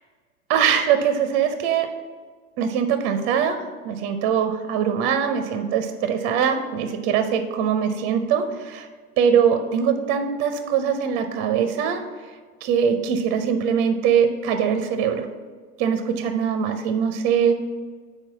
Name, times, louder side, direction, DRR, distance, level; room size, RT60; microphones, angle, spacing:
voice 1, 0.5-1.9 2.6-3.6 3.8-8.9 9.2-12.0 12.6-15.3 15.8-17.5, right 7 dB, 25° right, 8 dB, 0.4 m, -22 dB
5.4 x 4.1 x 5.8 m, 1.5 s
figure-of-eight pair, 90°, 45 cm